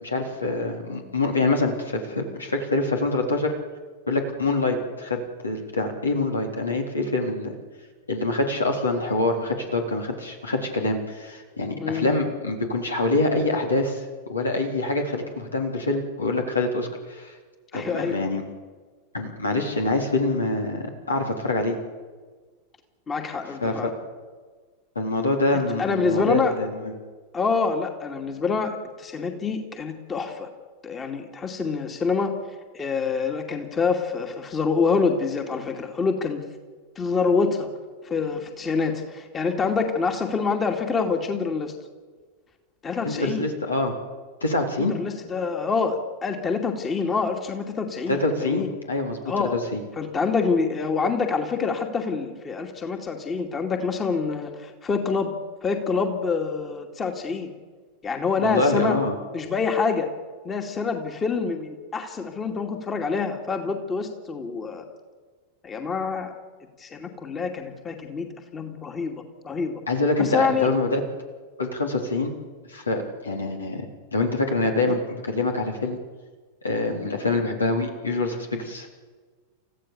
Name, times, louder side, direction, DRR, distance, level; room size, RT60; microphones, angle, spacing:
voice 1, 0.0-3.5 4.1-5.2 5.4-7.5 8.1-17.3 17.7-18.4 19.1-21.8 23.6-23.9 25.0-26.9 43.0-43.9 44.4-45.0 48.1-49.8 58.4-59.2 69.9-71.0 71.6-72.3 72.7-73.9 74.1-76.0 76.6-78.9, left 2 dB, 75° left, 2 dB, 3.7 m, -25 dB
voice 2, 17.7-18.2 23.1-23.9 25.8-26.5 27.3-30.5 30.8-32.4 32.7-36.5 37.0-37.7 38.1-41.7 42.8-43.5 44.8-48.7 49.3-49.5 50.0-55.3 55.6-57.5 58.0-59.0 59.3-60.1 60.4-64.8 65.6-66.3 66.8-69.8 70.2-70.7 74.9-75.0, left 5 dB, 20° left, 4 dB, 2.5 m, -26 dB
30.0 x 15.5 x 7.0 m, 1.4 s
figure-of-eight pair, 90°, 0 cm